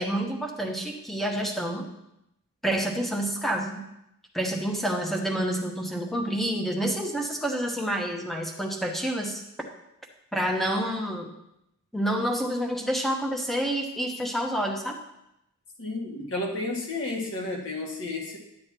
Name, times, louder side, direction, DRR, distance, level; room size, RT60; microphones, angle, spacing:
voice 1, 0.0-1.9 2.6-3.8 4.3-9.4 10.3-11.3 11.9-15.0, right 1 dB, ahead, 1 dB, 1.0 m, -28 dB
voice 2, 15.8-18.4, left 2 dB, 60° left, -1 dB, 2.0 m, -32 dB
11.0 x 8.6 x 3.0 m, 0.84 s
head